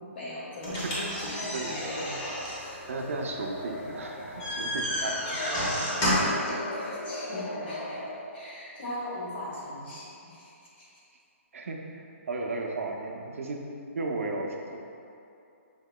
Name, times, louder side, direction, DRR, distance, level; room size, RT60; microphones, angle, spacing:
voice 1, 0.0-2.9 5.0-8.0 8.3-10.9, left 1 dB, 50° left, -7 dB, 1.4 m, -40 dB
sound 1, 0.6-6.5, equal, 25° left, 1.1 m, -31 dB
sound 2, 1.8-8.2, left 1 dB, 80° left, 0.6 m, -40 dB
voice 2, 2.9-5.2 11.5-11.8 12.3-13.6 14.0-14.8, right 3 dB, 75° right, 1 dB, 0.5 m, -34 dB
5.9 x 2.8 x 2.2 m, 2.7 s
hypercardioid pair, 160°, 7 cm